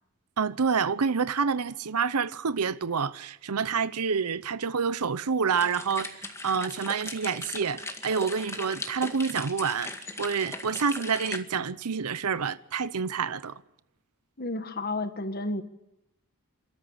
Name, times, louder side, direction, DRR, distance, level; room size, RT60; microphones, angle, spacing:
voice 1, 0.4-9.9 10.2-13.6, right 5 dB, 90° right, 0.8 m, -28 dB
sound 1, 5.5-11.4, left 2 dB, 10° left, 1.9 m, -38 dB
voice 2, 14.4-15.6, left 2 dB, 45° left, 1.7 m, -31 dB
28.5 x 13.5 x 8.8 m
head